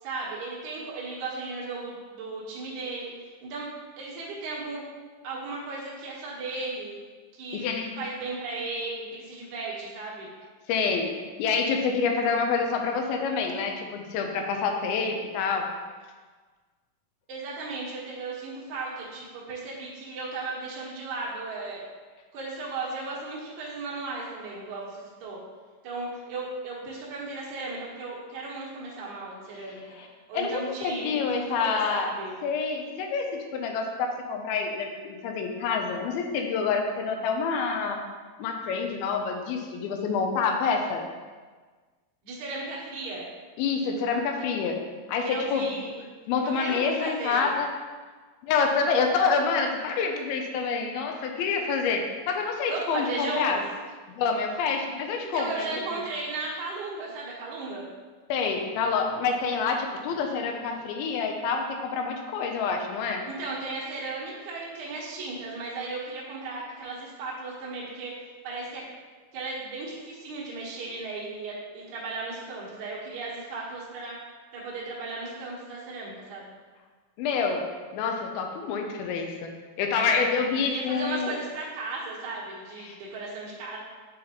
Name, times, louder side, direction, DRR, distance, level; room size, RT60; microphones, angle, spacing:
voice 1, 0.0-3.7 4.0-4.9 5.2-7.0 7.3-10.3 17.3-21.9 22.3-25.4 25.8-30.0 30.3-32.4 42.2-43.3 45.2-46.0 46.4-47.5 52.7-53.6 55.2-57.9 63.3-68.1 68.4-68.8 69.3-74.2 74.5-76.5 80.7-83.8, right 3 dB, 60° right, -6 dB, 2.3 m, -35 dB
voice 2, 7.5-7.9 10.7-11.1 11.4-15.7 30.0-30.1 30.3-32.1 32.4-38.0 38.4-41.0 43.6-44.8 45.1-45.7 46.3-47.7 48.4-53.6 54.1-56.0 58.3-63.2 77.2-77.6 77.9-79.5 79.8-81.4 82.8-83.0, left 5 dB, 85° left, 3 dB, 2.4 m, -27 dB
8.5 x 3.9 x 2.9 m, 1.4 s
omnidirectional pair, 4.4 m